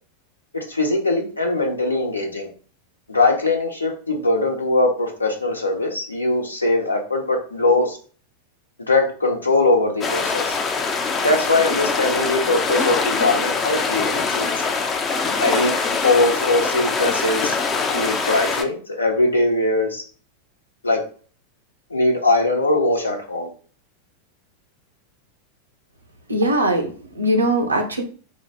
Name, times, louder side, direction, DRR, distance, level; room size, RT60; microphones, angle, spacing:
voice 1, 0.5-2.5 3.1-8.0 8.9-10.6 11.2-14.6 15.4-15.7 16.0-17.6 17.9-20.0 20.8-21.0 21.9-23.5, left 2 dB, 80° left, 2 dB, 0.9 m, -21 dB
sound 1, 10.0-18.6, left 4 dB, 25° left, 0.6 m, -23 dB
voice 2, 26.3-28.0, right 1 dB, 80° right, 3 dB, 0.8 m, -20 dB
4.8 x 2.2 x 4.2 m, 0.41 s
figure-of-eight pair, 90°, 0 cm